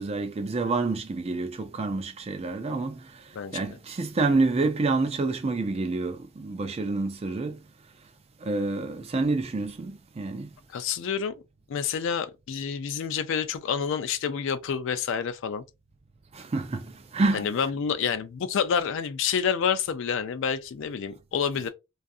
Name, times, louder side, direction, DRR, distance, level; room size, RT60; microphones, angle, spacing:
voice 1, 0.0-2.9 3.5-7.6 8.4-9.9 10.2-10.5 16.5-16.9 17.1-17.5, right 3 dB, 30° right, 0.3 m, -27 dB
voice 2, 3.3-3.8 10.7-11.3 11.7-15.6 17.3-21.7, left 7 dB, 60° left, 0.3 m, -28 dB
2.6 x 2.4 x 2.3 m
head